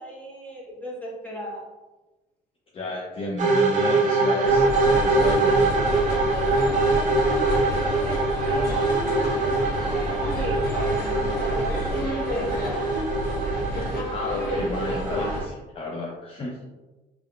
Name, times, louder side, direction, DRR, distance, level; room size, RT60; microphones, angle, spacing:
voice 1, 0.0-1.6 7.3-9.3 10.2-12.7, equal, 10° left, -5 dB, 1.3 m, -36 dB
voice 2, 2.7-5.6 14.1-16.7, left 2 dB, 35° left, -2 dB, 0.5 m, -31 dB
sound 1, 3.4-15.4, right 3 dB, 50° right, 0.7 m, -24 dB
sound 2, 4.4-15.4, equal, 65° left, 1.2 m, -30 dB
3.6 x 3.4 x 2.3 m, 1.1 s
cardioid pair, 110°, 17 cm